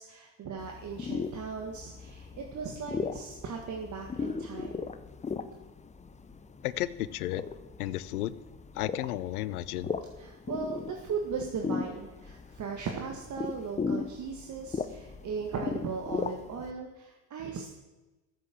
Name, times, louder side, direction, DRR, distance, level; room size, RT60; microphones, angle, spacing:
voice 1, 0.0-4.8 10.2-17.7, right 5 dB, 40° right, 1 dB, 1.9 m, -37 dB
sound 1, 0.6-16.7, left 5 dB, 15° left, 0.8 m, -37 dB
voice 2, 6.6-7.4 7.8-8.3 8.7-9.9, left 15 dB, 90° left, 17 dB, 0.7 m, -33 dB
13.5 x 7.7 x 7.8 m, 1.1 s
hypercardioid pair, 90°, 44 cm